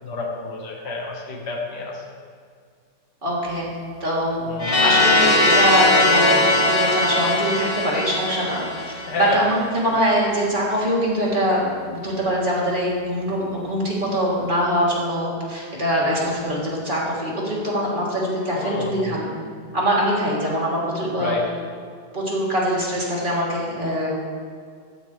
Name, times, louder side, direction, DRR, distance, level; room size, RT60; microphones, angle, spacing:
voice 1, 0.0-2.0 4.5-4.8 9.1-9.4 18.6-19.2 21.1-21.5, left 3 dB, 65° left, -2 dB, 2.4 m, -29 dB
voice 2, 3.2-3.7 4.0-4.4 4.8-19.4 19.7-21.4 22.1-24.1, equal, 25° right, -6 dB, 3.6 m, -23 dB
sound 1, 4.6-9.4, left 2 dB, 20° left, 1.3 m, -19 dB
15.5 x 15.0 x 3.5 m, 2.1 s
omnidirectional pair, 2.0 m